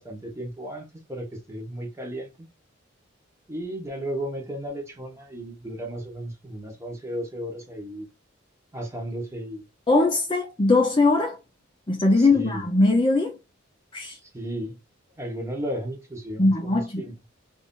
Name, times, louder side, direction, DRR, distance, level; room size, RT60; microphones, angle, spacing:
voice 1, 0.0-2.5 3.5-8.1 8.7-9.6 12.1-12.6 14.3-14.8 15.2-17.2, right 1 dB, 15° right, 1.0 m, -34 dB
voice 2, 9.9-11.4 11.9-13.4 13.9-14.2 16.4-17.1, left 2 dB, 25° left, 0.6 m, -20 dB
3.2 x 2.6 x 3.6 m
head